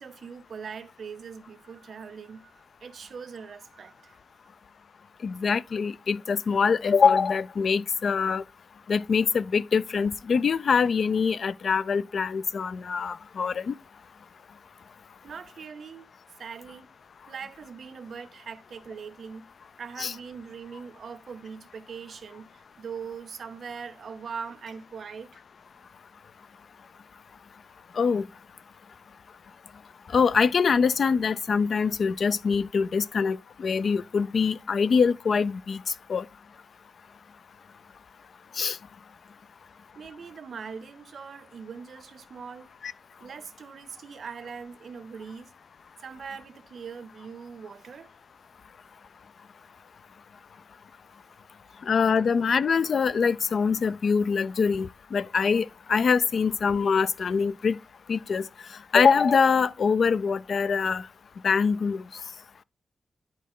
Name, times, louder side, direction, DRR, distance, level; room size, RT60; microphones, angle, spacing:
voice 1, 0.0-2.5 2.8-4.2 15.2-16.1 16.4-16.9 17.3-19.4 19.8-25.4 39.9-42.7 43.2-45.5 46.0-48.1, right 6 dB, 70° right, 0.7 m, -41 dB
voice 2, 5.2-8.4 8.9-13.7 20.0-20.1 28.0-28.2 30.1-35.8 36.1-36.2 38.6-38.8 42.8-42.9 51.9-57.8 58.1-58.5 58.9-61.1 61.4-62.0, left 5 dB, 65° left, 0.3 m, -24 dB
10.5 x 4.1 x 3.6 m
wide cardioid pair, 130°, 0 cm